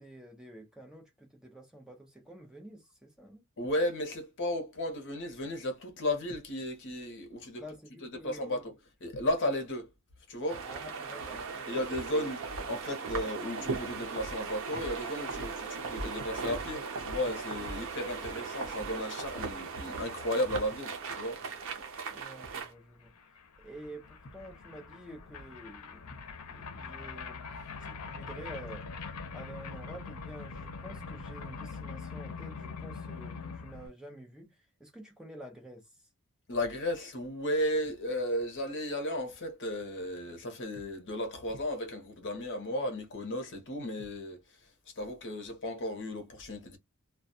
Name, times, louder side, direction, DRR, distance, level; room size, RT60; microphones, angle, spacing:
voice 1, 0.0-3.4 7.6-8.5 10.6-12.1 22.1-23.1 23.6-26.0 26.5-27.4 27.8-28.9 29.3-35.8, right 1 dB, 5° right, 0.7 m, -49 dB
voice 2, 3.6-7.6 8.2-8.8 9.0-9.9 10.3-10.6 11.7-21.4 36.5-44.4 45.0-46.8, left 1 dB, 55° left, 0.8 m, -34 dB
sound 1, 10.5-22.7, right 4 dB, 65° right, 0.7 m, -38 dB
sound 2, 22.7-22.8 23.0-33.9, left 4 dB, 85° left, 0.6 m, -43 dB
2.3 x 2.2 x 2.6 m
head